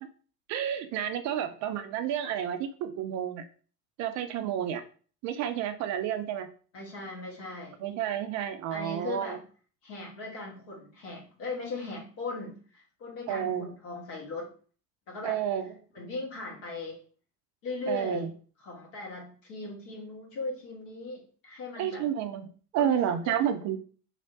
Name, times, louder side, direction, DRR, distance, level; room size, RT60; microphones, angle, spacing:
voice 1, 0.5-3.5 4.0-4.8 5.2-6.5 7.8-9.4 13.3-13.7 15.2-15.7 17.9-18.3 21.8-23.8, right 10 dB, 40° right, 9 dB, 0.4 m, -30 dB
voice 2, 6.7-7.8 8.7-9.4 9.8-14.5 15.1-15.4 15.9-17.0 17.6-18.3 18.6-22.1 22.7-23.3, left 2 dB, 55° left, -2 dB, 1.5 m, -38 dB
3.1 x 2.7 x 2.7 m, 0.41 s
figure-of-eight pair, 65°, 49 cm